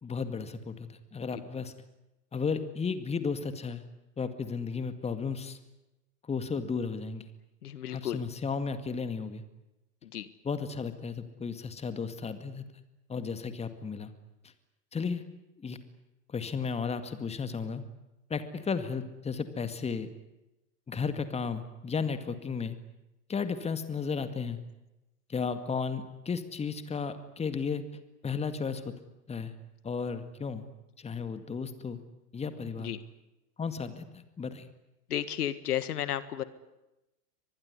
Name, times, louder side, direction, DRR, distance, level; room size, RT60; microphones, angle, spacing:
voice 1, 0.0-1.7 2.3-3.8 4.2-5.6 6.3-7.3 7.9-9.4 10.4-12.6 13.1-14.1 14.9-15.2 15.6-15.8 16.3-17.8 18.3-20.1 20.9-22.8 23.3-24.6 25.3-27.8 28.2-28.9 29.3-29.5 29.8-30.6 31.0-32.0 32.3-32.9 33.6-34.7, left 5 dB, 15° left, 10 dB, 2.1 m, -34 dB
voice 2, 7.6-8.2 10.1-10.3 32.8-33.0 35.1-36.4, left 11 dB, 65° left, 14 dB, 1.7 m, -33 dB
24.5 x 21.0 x 9.7 m, 0.96 s
hypercardioid pair, 105°, 48 cm